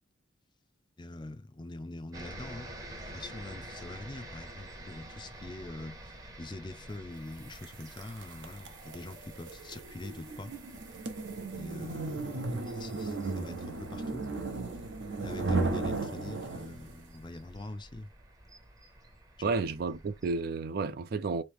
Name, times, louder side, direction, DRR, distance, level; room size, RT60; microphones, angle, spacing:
voice 1, 1.0-6.1 6.4-10.5 11.5-14.2 15.2-18.1 19.4-19.5, left 2 dB, 25° left, 0.4 m, -44 dB
sound 1, 2.1-20.4, right 1 dB, 20° right, 0.7 m, -49 dB
sound 2, 7.6-17.0, right 3 dB, 65° right, 0.8 m, -35 dB
voice 2, 19.4-21.4, right 4 dB, 50° right, 0.3 m, -31 dB
3.1 x 2.8 x 3.4 m
head